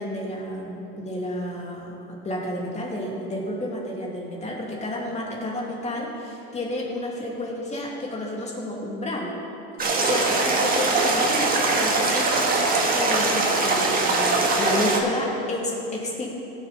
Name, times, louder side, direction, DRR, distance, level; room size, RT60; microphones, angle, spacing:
voice 1, 0.0-9.3 9.8-16.3, left 1 dB, 25° left, -2 dB, 2.6 m, -31 dB
sound 1, 9.8-15.0, right 3 dB, 30° right, 1.6 m, -22 dB
17.0 x 6.9 x 4.2 m, 3.0 s
supercardioid pair, 105°, 29 cm